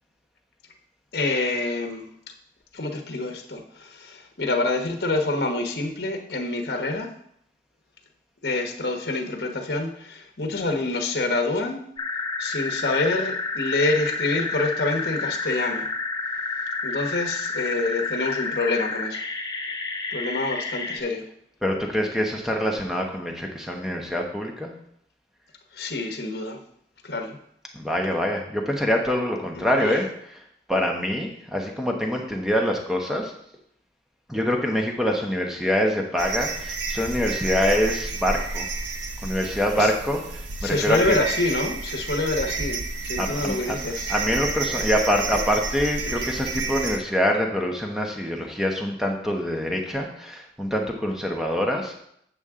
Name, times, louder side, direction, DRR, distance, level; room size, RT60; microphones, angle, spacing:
voice 1, 1.1-2.1 2.7-7.1 8.4-11.8 12.4-15.9 16.8-19.2 20.1-21.2 25.7-26.6 27.0-27.4 29.5-30.0 39.8-39.9 40.6-44.1 46.0-46.4, left 2 dB, 60° left, 4 dB, 1.2 m, -27 dB
sound 1, 12.0-21.0, left 3 dB, 20° left, 0.6 m, -30 dB
voice 2, 21.6-24.7 27.7-30.4 30.7-33.3 34.3-38.7 39.2-41.2 43.2-43.8 44.1-52.0, equal, 5° right, 1 dB, 1.0 m, -25 dB
sound 2, 36.2-47.0, right 3 dB, 90° right, 0.8 m, -30 dB
8.3 x 7.0 x 3.7 m, 0.69 s
head